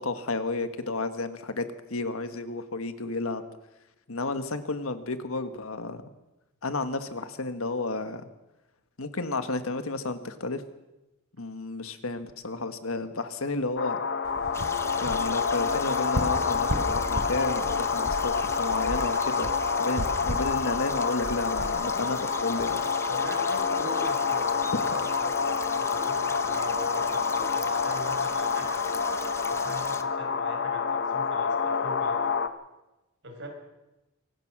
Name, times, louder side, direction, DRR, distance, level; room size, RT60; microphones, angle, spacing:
voice 1, 0.0-3.4 4.1-6.0 6.6-8.3 9.0-10.6 11.4-14.0 15.0-19.5 19.8-22.9, left 3 dB, 80° left, 9 dB, 1.6 m, -32 dB
sound 1, 13.8-32.5, left 5 dB, 55° left, 1.0 m, -28 dB
sound 2, 14.2-22.7, equal, 80° right, 3.5 m, -36 dB
sound 3, 14.5-30.0, left 3 dB, 15° left, 1.0 m, -40 dB
voice 2, 19.3-20.0 23.1-28.9 29.5-32.4 33.2-33.5, right 1 dB, 60° right, 3 dB, 5.3 m, -42 dB
24.0 x 18.0 x 6.1 m, 1.0 s
head